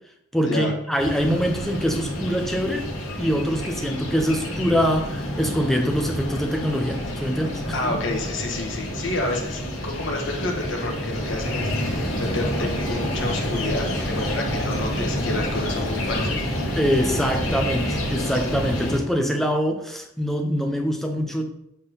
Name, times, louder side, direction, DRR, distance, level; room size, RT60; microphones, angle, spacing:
voice 1, 0.3-2.9 3.2-7.9 16.7-21.4, equal, ahead, 3 dB, 0.7 m, -24 dB
sound 1, 1.0-19.0, equal, 80° left, 2.0 m, -28 dB
voice 2, 7.7-16.4, left 2 dB, 60° left, 0 dB, 1.6 m, -29 dB
7.9 x 3.8 x 5.6 m, 0.80 s
head